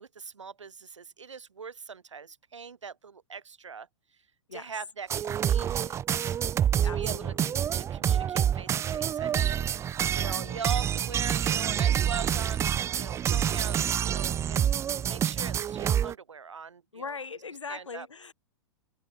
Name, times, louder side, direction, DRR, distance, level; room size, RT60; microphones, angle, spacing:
voice 1, 0.0-3.9 4.5-6.4 6.8-7.3 7.7-17.1 17.7-18.1, right 6 dB, 80° right, 3.0 m, -41 dB
sound 1, 5.1-16.1, right 9 dB, 20° right, 0.5 m, -27 dB
voice 2, 6.8-7.7 10.2-10.6 13.3-13.5 13.8-13.9 16.9-18.3, left 5 dB, 80° left, 3.9 m, -41 dB
figure-of-eight pair, 100°, 15 cm